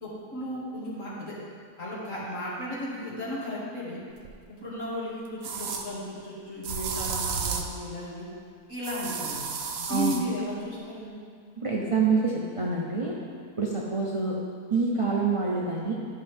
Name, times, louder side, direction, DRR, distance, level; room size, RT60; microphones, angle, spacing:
voice 1, 0.0-1.3 1.8-4.0 4.5-8.3 8.7-9.4 9.8-11.2, equal, 50° left, -9 dB, 2.6 m, -35 dB
sound 1, 4.2-4.3 5.4-5.8 6.6-7.8 8.8-10.2, right 5 dB, 65° right, 1.1 m, -32 dB
voice 2, 11.6-13.1 13.6-14.4 14.7-15.9, right 4 dB, 35° right, -4 dB, 0.5 m, -26 dB
12.0 x 5.3 x 3.5 m, 2.2 s
omnidirectional pair, 1.7 m